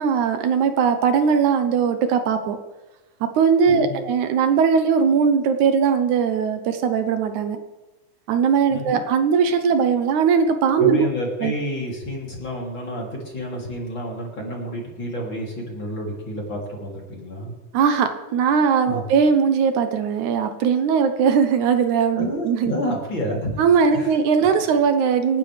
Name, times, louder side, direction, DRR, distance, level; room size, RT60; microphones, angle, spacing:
voice 1, 0.0-2.6 3.4-7.6 8.3-11.1 11.4-11.5 17.7-22.7 23.6-25.4, right 6 dB, 75° right, 8 dB, 2.2 m, -19 dB
voice 2, 3.7-4.0 8.7-9.0 10.8-17.6 18.9-19.0 22.2-23.6 23.9-24.1 24.4-24.6, equal, 40° left, -2 dB, 3.5 m, -29 dB
28.0 x 10.0 x 3.4 m, 1.2 s
omnidirectional pair, 3.7 m